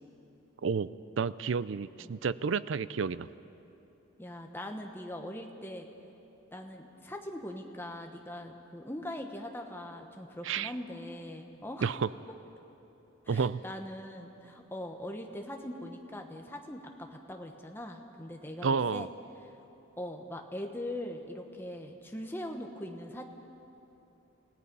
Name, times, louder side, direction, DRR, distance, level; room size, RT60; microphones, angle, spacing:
voice 1, 1.2-3.3 10.4-10.7 11.8-12.1 13.3-13.6 18.6-19.1, right 5 dB, 65° right, 17 dB, 0.4 m, -30 dB
voice 2, 4.2-5.9 6.5-11.9 13.2-19.1 20.0-23.2, left 1 dB, 10° left, 3 dB, 1.2 m, -41 dB
28.5 x 16.5 x 5.5 m, 3.0 s
head